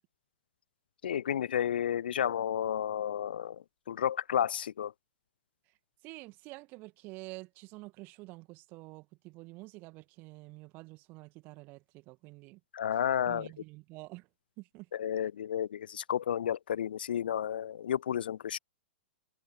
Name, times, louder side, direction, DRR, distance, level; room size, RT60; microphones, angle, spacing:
voice 1, 1.0-4.9 12.7-13.5 14.9-18.6, left 9 dB, 60° left, 0.7 m, -32 dB
voice 2, 6.0-12.6 13.3-14.3 14.6-14.9, right 23 dB, 35° right, 2.3 m, -48 dB
figure-of-eight pair, 100°, 6 cm